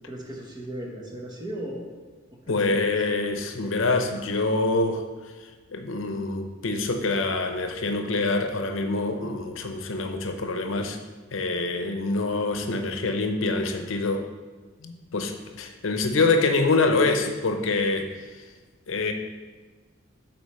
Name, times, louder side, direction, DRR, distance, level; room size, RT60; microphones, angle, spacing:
voice 1, 0.1-1.9 2.3-3.0, right 1 dB, 20° right, -1 dB, 1.0 m, -36 dB
voice 2, 2.5-5.0 5.4-11.0 11.3-14.3 14.8-18.4 18.9-19.1, left 3 dB, 75° left, 6 dB, 0.7 m, -25 dB
8.0 x 4.4 x 4.2 m, 1.3 s
head